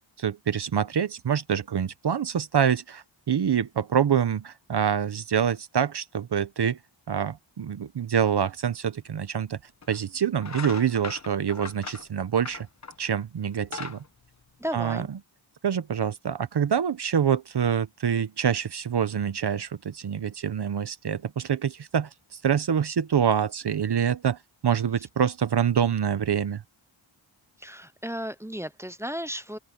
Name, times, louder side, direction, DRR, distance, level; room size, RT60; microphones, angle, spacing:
voice 1, 0.2-6.8 7.1-9.6 9.9-12.7 13.0-14.0 14.7-15.1 15.6-22.1 22.4-26.6, right 8 dB, 55° right, 0.8 m, -26 dB
sound 1, 9.1-9.2 9.8-10.0 10.4-13.1 13.5-15.1, left 4 dB, 35° left, 1.1 m, -40 dB
voice 2, 14.6-15.1 27.6-29.6, equal, 5° right, 0.4 m, -34 dB
open air
wide cardioid pair, 145°, 49 cm